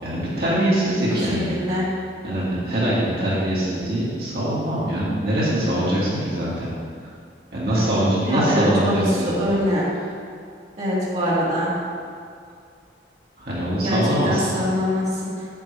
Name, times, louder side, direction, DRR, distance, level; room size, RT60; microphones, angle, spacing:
voice 1, 0.0-1.5 1.8-1.9 2.2-6.7 7.5-9.6 13.4-14.6, right 1 dB, 60° right, -8 dB, 2.0 m, -23 dB
voice 2, 1.1-1.8 8.2-9.8 10.8-11.7 13.8-14.0 14.2-15.1, equal, 40° right, -8 dB, 2.1 m, -23 dB
9.0 x 8.0 x 3.4 m, 2.3 s
head